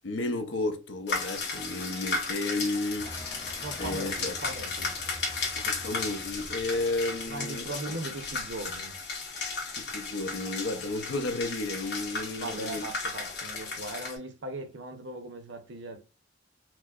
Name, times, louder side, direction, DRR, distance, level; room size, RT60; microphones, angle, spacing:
voice 1, 0.0-3.1 3.8-4.3 5.6-8.0 9.8-12.9, left 2 dB, 75° left, 0.7 m, -32 dB
sound 1, 1.1-14.2, left 4 dB, 60° left, 1.3 m, -35 dB
sound 2, 3.0-7.7, equal, 20° left, 0.4 m, -46 dB
voice 2, 3.6-4.9 7.3-8.9 12.3-16.0, right 2 dB, 70° right, 0.6 m, -39 dB
4.6 x 2.1 x 2.3 m
head